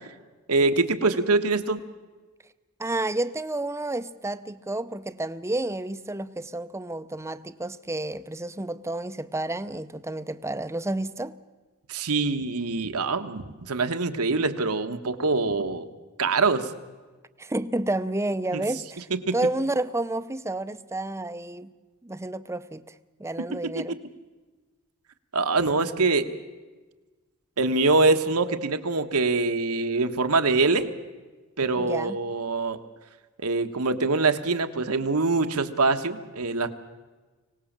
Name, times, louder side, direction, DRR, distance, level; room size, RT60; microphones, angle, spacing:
voice 1, 0.5-1.8 11.9-15.9 16.2-16.7 18.5-18.6 19.1-19.3 23.5-23.9 25.3-26.3 27.6-30.9 31.6-32.8 33.4-36.7, right 3 dB, 80° right, 1.3 m, -24 dB
voice 2, 2.8-11.3 17.4-21.7 22.0-22.9 23.2-24.0 31.8-32.2, right 2 dB, 10° right, 0.6 m, -30 dB
24.5 x 18.0 x 7.4 m
head